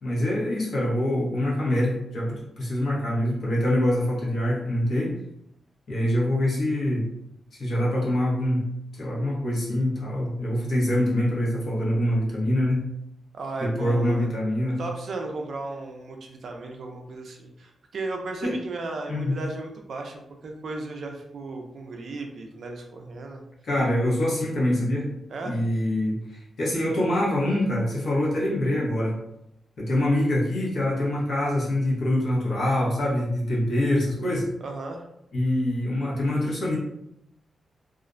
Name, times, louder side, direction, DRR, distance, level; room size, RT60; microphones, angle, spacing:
voice 1, 0.0-5.2 5.9-7.1 7.5-12.8 13.6-14.8 18.4-18.5 19.1-19.4 23.6-25.1 25.4-29.1 29.8-34.4 35.3-36.8, left 1 dB, 60° left, -5 dB, 0.8 m, -25 dB
voice 2, 13.3-14.3 14.7-23.4 25.3-25.6 34.6-35.1, right 3 dB, 55° right, 2 dB, 0.4 m, -35 dB
2.4 x 2.1 x 2.5 m, 0.79 s
wide cardioid pair, 165°, 0 cm